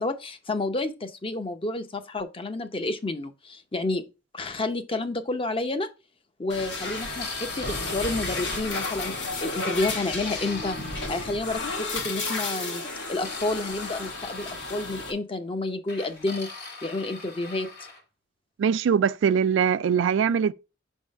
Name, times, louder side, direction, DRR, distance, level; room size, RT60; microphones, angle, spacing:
voice 1, 0.0-4.0 4.3-5.9 6.4-9.1 9.4-16.5 16.8-17.7, left 2 dB, 30° left, 0.7 m, -30 dB
sound 1, 6.5-15.1, left 3 dB, 75° left, 1.6 m, -33 dB
sound 2, 6.8-9.4 9.8-11.8 12.8-14.9 15.9-18.0, left 3 dB, 60° left, 1.9 m, -41 dB
voice 2, 18.6-20.5, right 7 dB, 90° right, 0.3 m, -22 dB
5.5 x 3.6 x 5.2 m
head